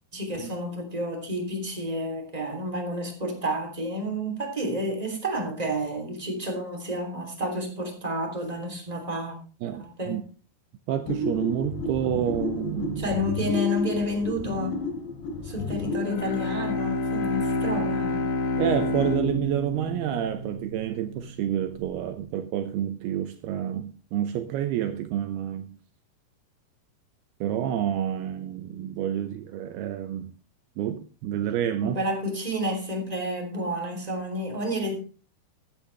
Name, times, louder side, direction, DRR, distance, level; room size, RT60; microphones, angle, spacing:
voice 1, 0.1-9.4 9.8-10.2 13.0-14.8 15.4-18.3 31.8-35.0, equal, 10° right, 2.4 m, -30 dB
voice 2, 9.6-10.2 10.9-13.1 18.6-25.8 27.4-30.3 30.8-32.0, right 11 dB, 75° right, 2.6 m, -29 dB
sound 1, 11.1-16.1, left 3 dB, 85° left, 3.8 m, -31 dB
Bowed string instrument, 15.9-21.3, left 2 dB, 65° left, 3.6 m, -28 dB
15.5 x 10.5 x 3.3 m
omnidirectional pair, 4.9 m